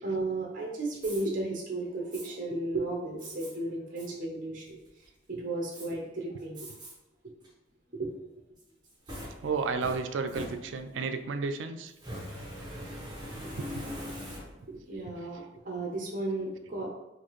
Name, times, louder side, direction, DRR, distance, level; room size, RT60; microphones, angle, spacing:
voice 1, 0.0-6.7 8.0-8.1 14.9-16.9, right 2 dB, 45° right, -1 dB, 0.7 m, -34 dB
Fire, 0.9-1.2 2.1-2.3 3.2-3.5 4.0-4.1 4.6-5.0 5.7-5.9 6.5-6.9 7.4-7.5 8.6-11.0 11.9-14.8, equal, 25° right, 1.2 m, -42 dB
voice 2, 9.4-11.9 13.6-13.8, right 4 dB, 85° right, 8 dB, 0.4 m, -32 dB
4.3 x 2.6 x 3.0 m, 0.99 s
head